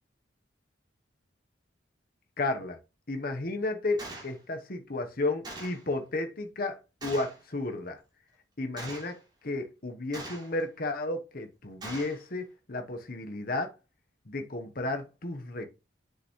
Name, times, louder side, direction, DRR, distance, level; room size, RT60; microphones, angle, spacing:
voice 1, 2.4-2.8 3.1-8.0 8.6-9.2 9.4-13.7 14.3-15.7, left 2 dB, 50° left, 1.0 m, -33 dB
Gunshot gunfire, 4.0-4.3 5.4-5.8 7.0-7.4 8.8-9.2 10.1-10.6 11.8-12.2, right 2 dB, 20° right, 3.0 m, -41 dB
7.8 x 6.8 x 3.1 m
head